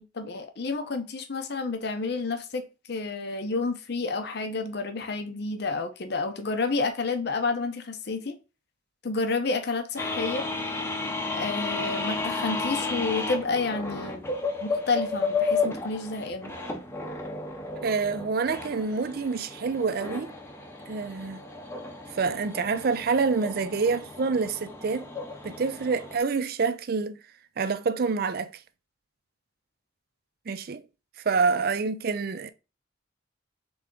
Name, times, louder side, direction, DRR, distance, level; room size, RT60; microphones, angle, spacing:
voice 1, 0.0-8.3 9.0-10.5 11.3-14.2 14.6-16.5, left 3 dB, 60° left, 0.7 m, -30 dB
sound 1, 10.0-26.2, left 3 dB, 15° left, 0.7 m, -33 dB
voice 2, 17.8-20.3 20.9-21.4 22.1-25.1 25.4-27.2 27.6-28.5 30.5-30.8 31.2-32.5, right 4 dB, 50° right, 0.4 m, -27 dB
3.9 x 3.4 x 3.7 m
head